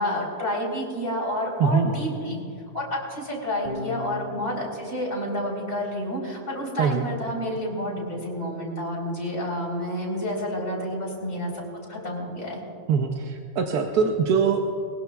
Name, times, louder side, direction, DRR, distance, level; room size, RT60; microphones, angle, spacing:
voice 1, 0.0-2.4 2.7-12.6, left 1 dB, 50° left, -2 dB, 4.2 m, -29 dB
voice 2, 1.6-1.9 6.8-7.0 12.9-14.6, right 6 dB, 90° right, 3 dB, 1.4 m, -22 dB
Electric guitar / Bass guitar, 3.6-10.0, left 2 dB, 35° right, 3.1 m, -43 dB
22.0 x 20.5 x 2.4 m, 2.7 s
omnidirectional pair, 1.6 m